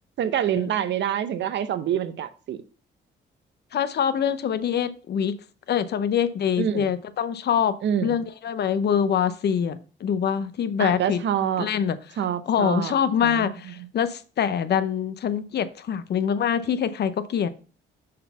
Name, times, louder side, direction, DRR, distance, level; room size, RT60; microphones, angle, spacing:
voice 1, 0.2-2.6 6.6-6.9 7.8-8.2 10.8-11.7 12.2-12.9 13.2-13.5, right 9 dB, 65° right, 0.7 m, -26 dB
voice 2, 3.7-5.3 5.7-7.7 8.0-11.2 11.6-12.0 12.5-17.5, left 8 dB, 55° left, 0.7 m, -24 dB
6.5 x 4.0 x 5.6 m
cardioid pair, 90°, 20 cm